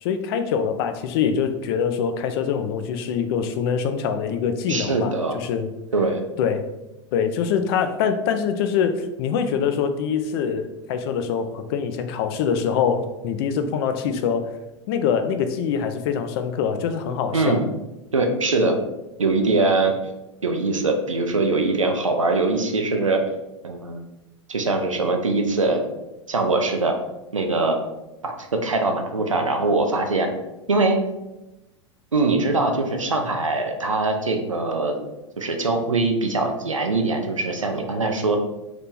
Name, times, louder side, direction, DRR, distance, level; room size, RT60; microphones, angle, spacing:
voice 1, 0.0-5.7 6.4-6.7 7.1-14.6 14.9-17.6, left 7 dB, 50° left, 8 dB, 0.4 m, -24 dB
voice 2, 4.7-5.4 5.9-6.2 17.3-17.6 18.1-18.8 19.2-19.9 20.4-23.2 23.6-24.0 24.5-25.8 26.3-26.9 27.3-27.8 28.2-30.3 30.7-31.0 32.1-35.0 35.4-38.4, right 3 dB, 90° right, 4 dB, 0.5 m, -22 dB
2.9 x 2.8 x 3.7 m, 0.97 s
figure-of-eight pair, 90°, 16 cm